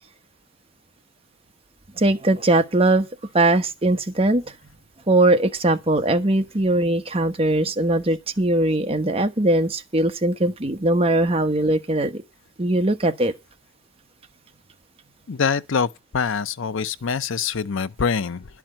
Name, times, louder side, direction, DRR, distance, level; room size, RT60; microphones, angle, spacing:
voice 1, 2.0-3.1 3.3-4.4 5.1-12.2 12.6-13.3, right 2 dB, 30° right, 1.1 m, -20 dB
voice 2, 15.3-18.5, left 6 dB, 65° left, 0.6 m, -24 dB
11.5 x 6.0 x 8.9 m
head